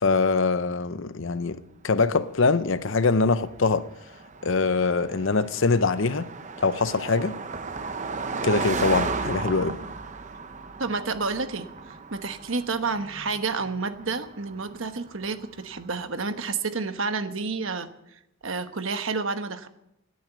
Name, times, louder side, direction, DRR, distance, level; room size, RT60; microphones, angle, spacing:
voice 1, 0.0-1.6 1.8-3.9 4.4-6.3 6.6-7.3 8.4-9.8, left 4 dB, 55° left, 0.6 m, -23 dB
Car passing by, 2.2-15.9, right 4 dB, 35° right, 0.7 m, -35 dB
voice 2, 10.8-17.9 18.4-19.7, right 4 dB, 60° right, 1.1 m, -30 dB
17.0 x 9.4 x 8.2 m
head